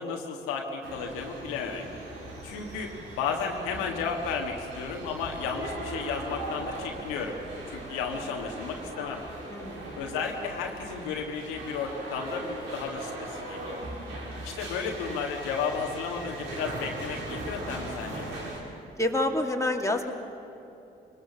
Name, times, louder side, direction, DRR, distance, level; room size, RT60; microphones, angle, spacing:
voice 1, 0.0-1.8 2.4-2.9 3.2-7.4 7.7-9.2 10.0-13.8 14.4-18.3, left 5 dB, 90° left, 1 dB, 1.6 m, -33 dB
sound 1, 0.8-18.6, right 2 dB, 85° right, 3.8 m, -39 dB
voice 2, 9.5-9.9 19.0-20.1, left 1 dB, 15° left, 2 dB, 2.5 m, -27 dB
21.5 x 19.5 x 7.4 m, 2.8 s
hypercardioid pair, 45°, 21 cm